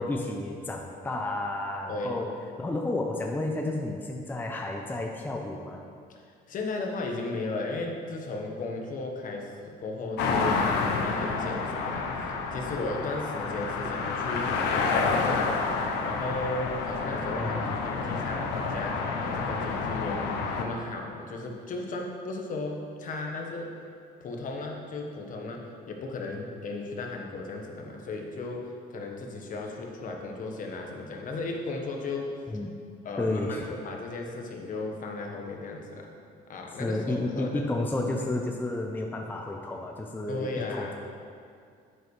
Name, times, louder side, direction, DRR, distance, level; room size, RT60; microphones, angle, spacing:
voice 1, 0.0-5.8 17.3-17.8 32.5-32.7 33.2-33.7 36.8-40.9, left 2 dB, 10° left, 2 dB, 0.6 m, -31 dB
voice 2, 6.5-15.6 16.0-17.5 17.8-23.7 24.2-32.3 33.0-36.1 36.5-37.9 40.3-40.9, left 2 dB, 50° left, 1 dB, 1.3 m, -35 dB
sound 1, 10.2-20.6, left 4 dB, 85° left, 0.9 m, -29 dB
9.2 x 8.0 x 3.3 m, 2.3 s
cardioid pair, 110°, 17 cm